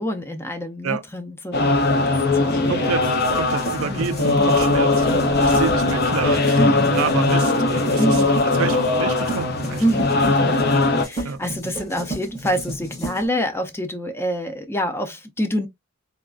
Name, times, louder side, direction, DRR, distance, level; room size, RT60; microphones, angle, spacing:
voice 1, 0.0-1.7 2.0-2.7 3.8-4.1 4.4-4.7 6.6-7.0 8.0-8.4 9.8-10.6 11.0-15.7, equal, 10° left, 0.4 m, -27 dB
sound 1, 1.5-11.1, left 2 dB, 50° left, 0.7 m, -20 dB
voice 2, 2.5-6.6 6.9-8.2 8.6-9.8 11.2-11.4, right 6 dB, 80° right, 0.4 m, -28 dB
sound 2, 3.1-13.2, right 1 dB, 30° left, 1.6 m, -33 dB
3.6 x 2.3 x 2.3 m
head